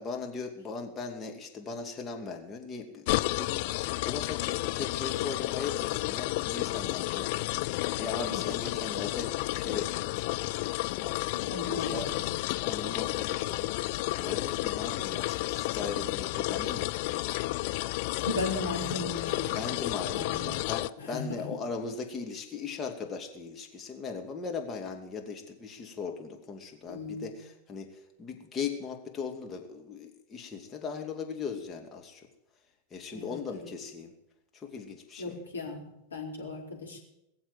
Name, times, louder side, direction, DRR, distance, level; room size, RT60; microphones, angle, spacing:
voice 1, 0.0-3.0 3.4-10.4 11.0-13.7 14.1-17.6 19.5-32.3 32.9-34.1 34.5-35.4, left 5 dB, 20° left, 2 dB, 2.5 m, -39 dB
sound 1, 3.1-20.9, left 20 dB, 50° left, 0.5 m, -31 dB
voice 2, 11.5-11.9 12.2-12.3 18.0-19.5 20.1-20.5 21.0-21.5 26.9-27.4 33.1-33.7 35.2-37.0, left 3 dB, 75° left, -2 dB, 4.7 m, -36 dB
21.0 x 7.4 x 9.0 m, 0.86 s
figure-of-eight pair, 90°, 0 cm